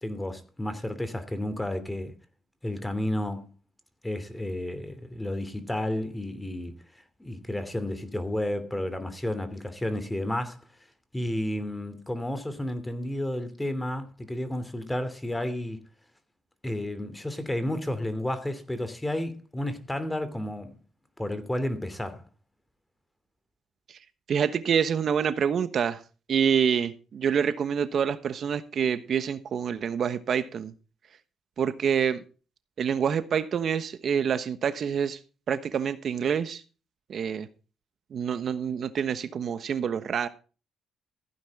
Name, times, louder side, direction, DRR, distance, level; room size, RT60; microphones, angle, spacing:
voice 1, 0.0-2.1 2.6-3.5 4.0-10.6 11.1-15.8 16.6-20.8 21.2-22.2, left 1 dB, 10° left, 2.8 m, -32 dB
voice 2, 24.3-26.0 26.3-30.7 31.6-32.2 32.8-35.2 35.5-36.6 37.1-37.5 38.1-40.3, right 7 dB, 55° right, 1.1 m, -27 dB
15.0 x 9.9 x 3.6 m
cardioid pair, 90°, 0 cm